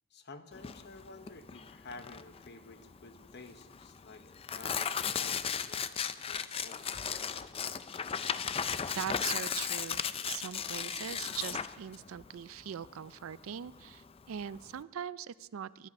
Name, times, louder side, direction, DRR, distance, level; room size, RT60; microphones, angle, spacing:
voice 1, 0.1-6.9, left 3 dB, 50° left, 9 dB, 1.1 m, -52 dB
Tearing, 0.5-14.8, left 7 dB, 25° left, 0.4 m, -36 dB
voice 2, 8.9-15.9, right 9 dB, 70° right, 18 dB, 0.4 m, -41 dB
22.5 x 10.5 x 5.3 m, 1.2 s
head